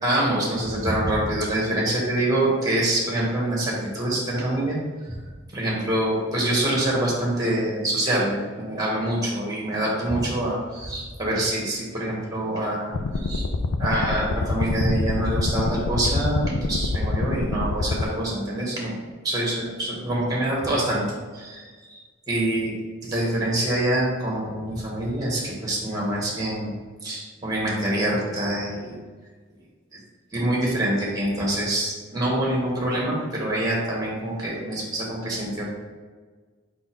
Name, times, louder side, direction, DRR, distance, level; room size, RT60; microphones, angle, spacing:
voice 1, 0.0-4.8 5.1-5.2 5.5-12.9 13.2-13.4 13.8-22.0 22.3-22.7 23.0-26.7 27.0-28.9 30.3-35.7, right 1 dB, 20° right, -3 dB, 2.0 m, -25 dB
sound 1, 12.9-18.0, left 3 dB, 90° left, 0.5 m, -26 dB
6.1 x 5.3 x 3.8 m, 1.5 s
head